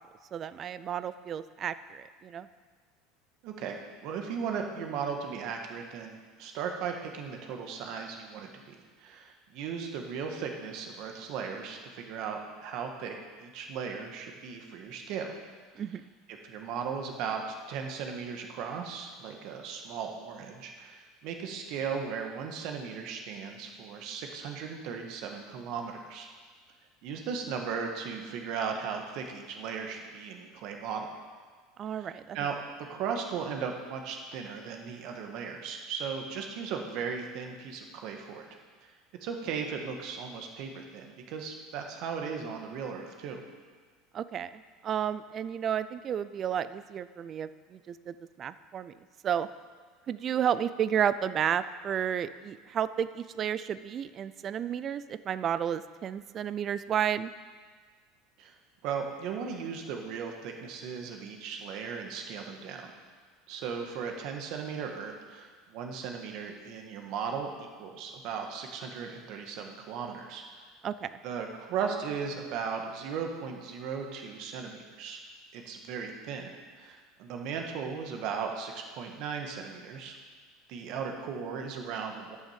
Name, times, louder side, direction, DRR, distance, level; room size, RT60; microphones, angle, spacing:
voice 1, 0.3-2.5 15.8-16.0 31.8-32.4 44.1-48.9 49.2-49.5 50.1-57.3 70.8-71.2, right 9 dB, 30° right, 14 dB, 0.4 m, -32 dB
voice 2, 3.4-15.3 16.4-17.4 17.7-26.3 27.0-31.1 31.9-32.5 32.9-38.4 39.2-43.4 58.4-58.5 58.8-62.9 63.5-67.5 67.8-70.7 71.2-75.2 75.5-80.2 80.7-82.4, right 6 dB, 55° right, 3 dB, 1.6 m, -37 dB
11.0 x 6.4 x 7.3 m, 1.5 s
supercardioid pair, 155°, 0 cm